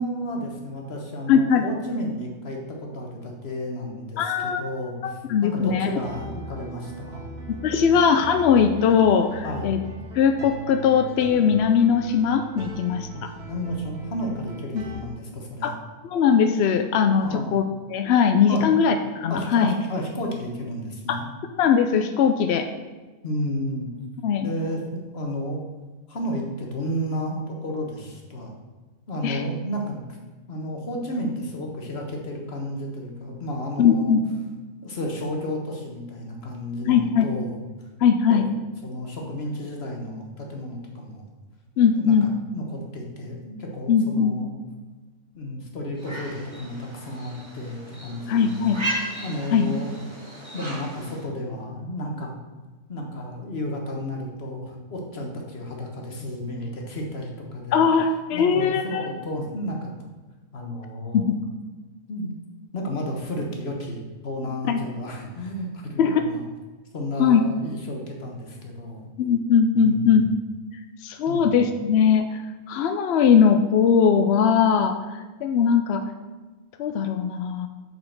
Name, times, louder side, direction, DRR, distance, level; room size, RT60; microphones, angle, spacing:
voice 1, 0.0-7.2 7.8-8.0 9.4-9.7 13.4-15.7 17.2-17.5 18.5-18.7 19.3-21.3 23.2-23.9 24.4-25.6 26.1-28.5 29.1-30.2 30.5-34.1 34.8-37.6 38.5-41.2 41.9-44.5 45.3-48.9 49.2-49.9 50.5-52.4 52.9-57.8 58.3-59.9 60.5-61.3 62.1-62.3 62.7-66.4 66.9-69.1 69.7-70.2 71.3-71.5, equal, 40° left, 1 dB, 1.6 m, -32 dB
voice 2, 1.3-1.6 4.2-4.6 5.0-5.9 7.6-9.8 10.1-13.3 14.7-14.8 15.6-15.7 16.0-17.6 17.9-19.7 21.1-21.2 21.6-22.7 24.2-24.5 29.2-29.4 33.8-34.2 36.9-37.3 38.0-38.5 41.8-42.3 43.9-44.4 48.3-48.8 49.5-49.7 57.7-59.1 61.1-61.2 64.7-64.8 66.0-66.2 67.2-67.4 69.2-70.2 71.0-72.4 72.7-75.0 75.4-76.0 76.8-77.7, left 7 dB, 70° left, 7 dB, 0.6 m, -20 dB
sound 1, 5.6-15.0, right 3 dB, 80° right, 1.9 m, -39 dB
sound 2, 46.0-51.3, right 1 dB, 20° right, 1.7 m, -35 dB
6.8 x 5.1 x 6.5 m, 1.3 s
omnidirectional pair, 1.6 m